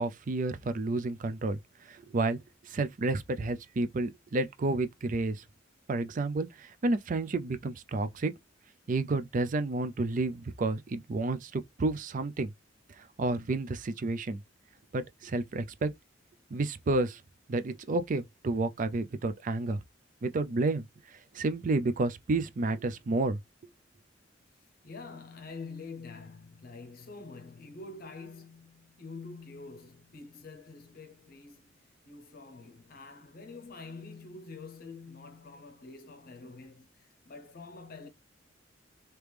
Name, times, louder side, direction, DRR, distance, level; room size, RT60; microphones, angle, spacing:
voice 1, 0.0-2.4 2.6-5.4 5.9-8.3 8.9-12.5 13.0-14.4 14.9-15.9 16.5-17.2 17.5-19.8 20.2-20.9 21.1-23.4, right 2 dB, 45° right, 0.4 m, -30 dB
voice 2, 24.8-38.1, left 3 dB, 50° left, 0.7 m, -46 dB
3.3 x 2.9 x 3.3 m
head